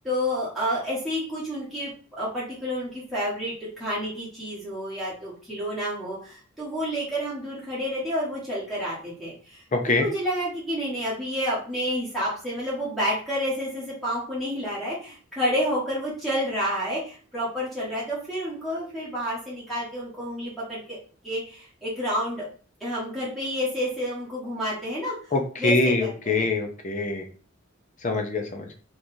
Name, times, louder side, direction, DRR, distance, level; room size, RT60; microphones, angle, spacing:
voice 1, 0.0-21.0 21.2-22.4 22.8-25.1 25.6-26.5, equal, ahead, -9 dB, 1.3 m, -29 dB
voice 2, 9.7-10.1 25.3-27.2 28.0-28.7, left 3 dB, 35° left, 4 dB, 0.6 m, -24 dB
3.7 x 3.0 x 2.7 m, 0.42 s
head